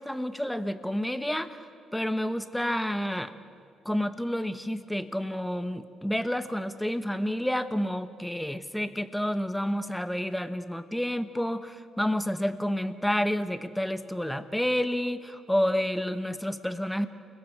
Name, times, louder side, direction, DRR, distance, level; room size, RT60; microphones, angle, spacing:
voice 1, 0.0-1.7 1.9-3.3 3.8-17.1, equal, 5° left, 10 dB, 1.1 m, -29 dB
29.0 x 21.0 x 4.6 m, 2.2 s
cardioid pair, 90°, 0 cm